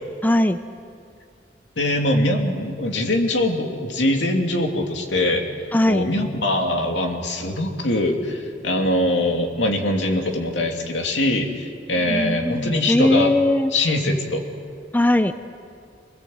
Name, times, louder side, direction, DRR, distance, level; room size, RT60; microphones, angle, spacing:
voice 1, 0.2-0.6 5.7-6.0 12.1-13.7 14.9-15.3, left 1 dB, 10° left, 10 dB, 0.6 m, -19 dB
voice 2, 1.8-5.4 5.9-13.3 13.7-14.4, left 1 dB, 80° left, 2 dB, 2.9 m, -22 dB
25.5 x 20.0 x 8.0 m, 2.3 s
head